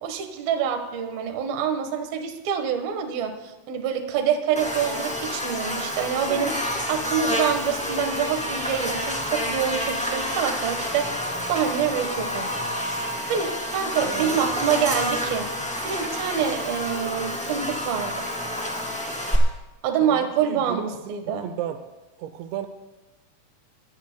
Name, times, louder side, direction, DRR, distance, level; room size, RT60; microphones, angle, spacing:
voice 1, 0.0-3.3 3.7-11.1 11.5-12.6 13.3-15.5 15.8-18.3 19.8-21.5, right 8 dB, 65° right, 6 dB, 2.9 m, -26 dB
Buzz, 4.5-19.3, equal, 5° left, 0.7 m, -29 dB
sound 1, 6.5-12.7, equal, 60° left, 7.7 m, -48 dB
voice 2, 14.0-14.4 20.0-21.8 22.2-22.7, right 11 dB, 85° right, 9 dB, 3.0 m, -34 dB
23.5 x 17.0 x 2.2 m, 1.1 s
omnidirectional pair, 5.0 m